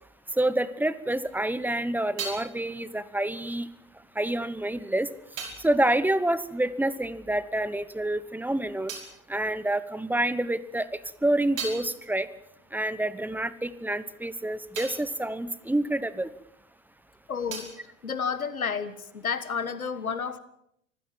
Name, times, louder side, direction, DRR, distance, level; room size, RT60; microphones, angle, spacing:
voice 1, 0.3-3.7 4.1-5.1 5.6-8.9 9.3-10.9 11.2-12.3 12.7-16.3, right 1 dB, 5° right, 17 dB, 1.0 m, -27 dB
sound 1, 1.5-7.4 7.6-10.3 10.7-16.8 17.0-19.0, right 5 dB, 70° right, 5.4 m, -44 dB
voice 2, 17.3-17.7 18.0-20.4, left 6 dB, 85° left, 14 dB, 1.6 m, -31 dB
24.5 x 15.5 x 7.6 m, 0.74 s
figure-of-eight pair, 90°, 41 cm